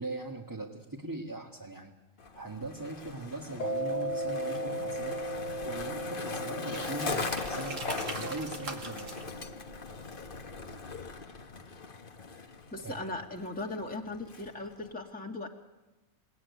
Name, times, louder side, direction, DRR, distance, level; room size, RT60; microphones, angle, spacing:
voice 1, 0.0-1.9 2.3-5.2 5.6-9.3 12.8-13.0, right 2 dB, 15° right, -1 dB, 2.0 m, -40 dB
Skateboard, 2.2-14.9, left 4 dB, 40° left, 1.4 m, -40 dB
Mallet percussion, 3.6-10.0, right 1 dB, 65° left, 1.4 m, -37 dB
sound 1, 6.7-11.4, right 3 dB, 70° right, 2.7 m, -43 dB
voice 2, 12.7-15.5, left 2 dB, 5° left, 0 dB, 1.9 m, -38 dB
29.0 x 18.5 x 9.7 m, 1.1 s
omnidirectional pair, 1.4 m